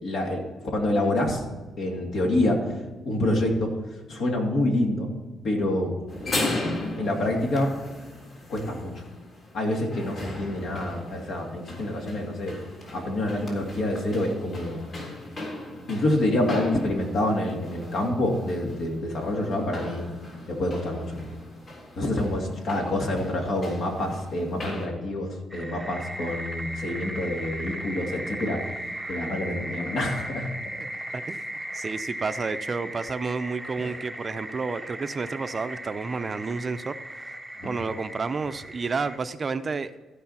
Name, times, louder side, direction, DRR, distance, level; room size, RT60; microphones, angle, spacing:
voice 1, 0.0-0.4 0.7-1.4 1.8-2.8 3.0-3.7 4.1-5.1 5.4-5.9 7.0-7.7 8.5-9.0 9.5-12.6 12.9-14.8 15.9-20.1 20.5-21.2 22.0-28.6 29.1-30.5 33.8-33.9 37.6-37.8, left 1 dB, 70° left, 0 dB, 2.7 m, -27 dB
sound 1, 6.1-24.9, left 2 dB, 45° left, 3.6 m, -37 dB
sound 2, 25.5-39.2, right 1 dB, 5° right, 0.8 m, -37 dB
voice 2, 31.1-31.5 31.7-37.2 37.6-39.9, right 4 dB, 35° right, 11 dB, 0.6 m, -30 dB
14.5 x 5.1 x 5.7 m, 1.3 s
cardioid pair, 90°, 0 cm